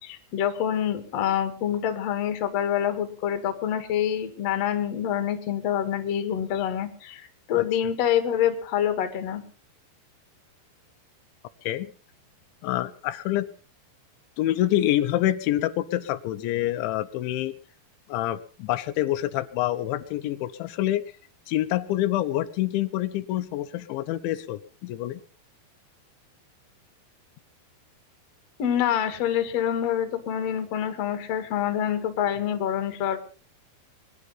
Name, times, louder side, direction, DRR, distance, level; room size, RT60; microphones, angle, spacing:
voice 1, 0.0-9.4 28.6-33.2, left 10 dB, 50° left, 8 dB, 2.3 m, -26 dB
voice 2, 12.6-13.5 14.4-17.5 18.1-21.0 21.5-25.2, left 14 dB, 85° left, 10 dB, 3.2 m, -26 dB
22.0 x 11.0 x 5.6 m, 0.40 s
omnidirectional pair, 5.2 m